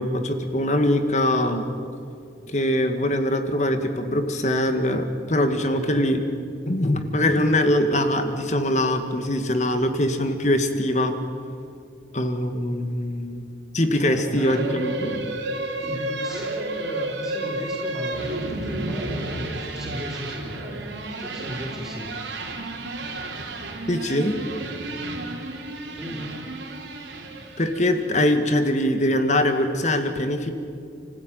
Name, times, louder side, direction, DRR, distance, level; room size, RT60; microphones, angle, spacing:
voice 1, 0.0-1.7 2.5-6.2 6.7-11.1 12.1-13.4 13.7-15.3 23.9-24.4 27.6-30.5, left 1 dB, 40° left, 7 dB, 1.9 m, -22 dB
voice 2, 5.7-6.0 14.0-14.8 15.8-20.8 21.2-22.6 26.0-26.4, equal, 5° right, -4 dB, 4.4 m, -36 dB
sound 1, 14.4-28.0, right 2 dB, 80° right, 3.6 m, -32 dB
29.5 x 15.5 x 9.4 m, 2.5 s
head